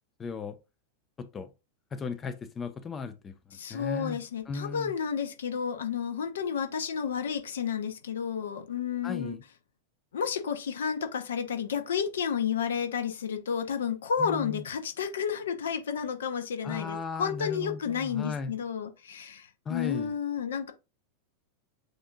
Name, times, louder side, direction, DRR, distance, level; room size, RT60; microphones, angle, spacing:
voice 1, 0.2-0.6 1.2-1.5 1.9-4.9 9.0-9.4 14.2-14.6 16.6-18.5 19.7-20.1, left 5 dB, 20° left, 0.5 m, -36 dB
voice 2, 3.5-9.4 10.1-20.7, left 7 dB, 65° left, 0.7 m, -31 dB
7.8 x 2.6 x 2.3 m
figure-of-eight pair, 90°, 0 cm